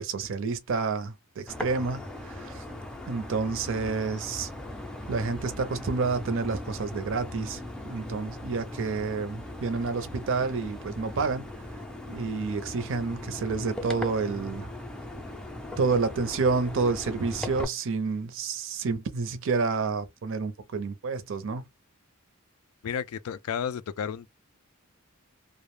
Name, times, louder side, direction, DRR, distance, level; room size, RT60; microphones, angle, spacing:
voice 1, 0.0-2.6 3.1-4.5 5.1-11.4 12.1-14.7 15.8-21.6, right 4 dB, 65° right, 0.5 m, -29 dB
sound 1, 1.5-17.6, left 1 dB, 5° left, 0.4 m, -39 dB
voice 2, 22.8-24.3, left 7 dB, 90° left, 0.3 m, -32 dB
2.4 x 2.1 x 3.0 m
head